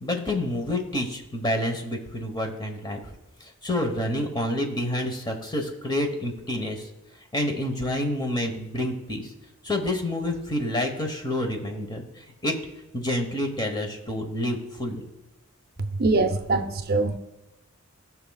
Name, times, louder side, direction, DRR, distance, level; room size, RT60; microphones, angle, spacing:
voice 1, 0.0-3.1 3.4-6.9 7.3-9.3 9.6-12.5 12.9-15.0, left 1 dB, 20° left, 4 dB, 1.1 m, -28 dB
voice 2, 15.8-17.2, right 3 dB, 50° right, 7 dB, 0.6 m, -23 dB
18.0 x 6.0 x 2.3 m, 0.98 s
head